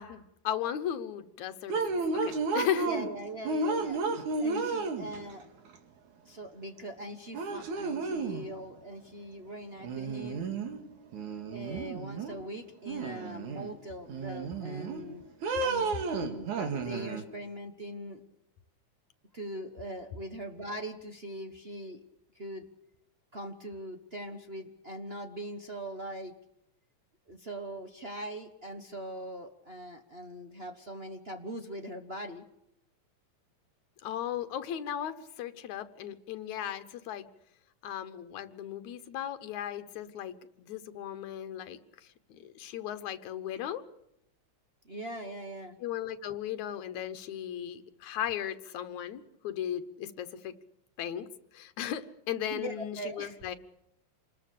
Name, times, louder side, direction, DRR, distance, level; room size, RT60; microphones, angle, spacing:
voice 1, 0.0-2.9 34.0-37.3 37.8-41.8 42.4-43.8 45.8-50.5 51.0-51.3 51.5-53.5, left 10 dB, 80° left, 10 dB, 2.6 m, -36 dB
sound 1, 1.7-3.1 3.5-5.4 6.8-6.9 7.3-8.5 9.8-10.8 11.1-12.4 12.9-13.7 14.1-15.0 15.4-17.2, right 3 dB, 90° right, 3.5 m, -32 dB
voice 2, 2.8-4.0 4.4-5.5 6.2-10.4 11.5-15.2 15.6-18.2 19.3-22.0 22.3-22.7 23.3-26.3 27.3-32.4 44.8-45.8 52.5-53.4, right 1 dB, 55° right, 3 dB, 0.6 m, -41 dB
27.5 x 20.5 x 6.8 m, 0.83 s
omnidirectional pair, 3.3 m